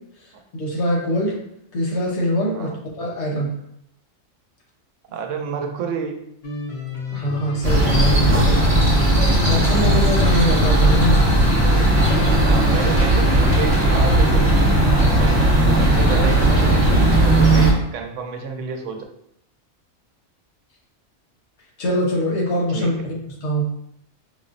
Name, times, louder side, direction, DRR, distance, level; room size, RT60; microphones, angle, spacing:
voice 1, 0.5-1.3 1.7-2.7 3.0-3.5 7.1-8.7 9.4-11.2 21.8-23.0 23.4-23.7, equal, 65° left, -2 dB, 1.1 m, -23 dB
voice 2, 5.1-6.3 9.8-10.2 12.4-14.5 15.2-15.4 15.7-19.0 22.7-23.0, right 5 dB, 90° right, 3 dB, 0.9 m, -29 dB
sound 1, 6.4-16.8, left 2 dB, 50° left, 0.6 m, -31 dB
sound 2, 7.6-17.7, right 1 dB, 35° right, 0.9 m, -16 dB
5.1 x 2.0 x 2.5 m, 0.76 s
omnidirectional pair, 1.2 m